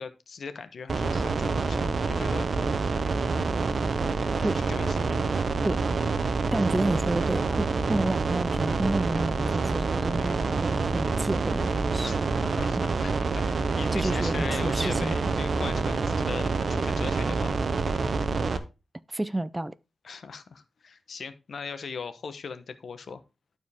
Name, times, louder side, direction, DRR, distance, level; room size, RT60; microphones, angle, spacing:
voice 1, 0.0-2.5 4.5-5.1 12.0-12.1 12.6-17.5 20.0-23.2, left 5 dB, 70° left, 0.9 m, -39 dB
sound 1, 0.9-18.6, right 4 dB, 60° right, 0.9 m, -27 dB
voice 2, 6.5-12.1 12.8-12.9 13.9-15.1 19.1-19.7, right 1 dB, 15° right, 0.4 m, -30 dB
12.0 x 4.6 x 3.5 m
wide cardioid pair, 95°, 0 cm